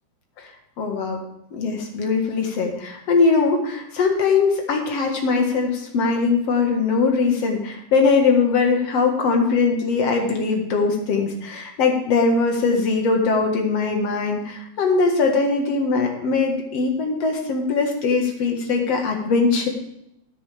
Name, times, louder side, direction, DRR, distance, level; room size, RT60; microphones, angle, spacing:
voice 1, 0.8-1.2 1.5-19.7, left 4 dB, 50° left, 2 dB, 2.3 m, -21 dB
14.5 x 10.0 x 3.5 m, 0.81 s
omnidirectional pair, 4.5 m